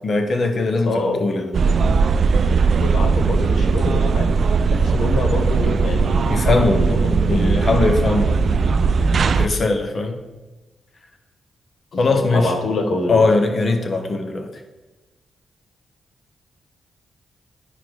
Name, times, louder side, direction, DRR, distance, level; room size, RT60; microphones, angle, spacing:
voice 1, 0.0-1.5 6.3-8.6 9.3-10.2 12.0-12.5 13.1-14.5, left 3 dB, 55° left, 6 dB, 1.0 m, -20 dB
voice 2, 0.8-1.2 1.6-1.8 2.8-4.3 4.7-7.7 11.9-13.2, left 2 dB, 75° left, 4 dB, 1.1 m, -26 dB
sound 1, 1.5-9.5, right 4 dB, 65° right, 0.3 m, -18 dB
10.0 x 4.9 x 3.8 m, 1.1 s
cardioid pair, 60°, 0 cm